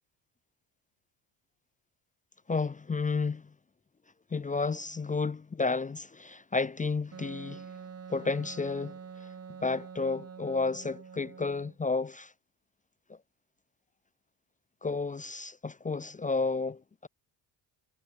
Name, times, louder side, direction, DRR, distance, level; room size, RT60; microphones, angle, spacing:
voice 1, 2.5-3.4 4.3-7.7 8.1-9.3 9.6-12.3 13.1-13.2 14.8-17.1, left 4 dB, 15° left, 0.5 m, -32 dB
Wind instrument woodwind instrument, 7.1-11.8, right 6 dB, 30° right, 2.2 m, -46 dB
supercardioid pair, 80°, 47 cm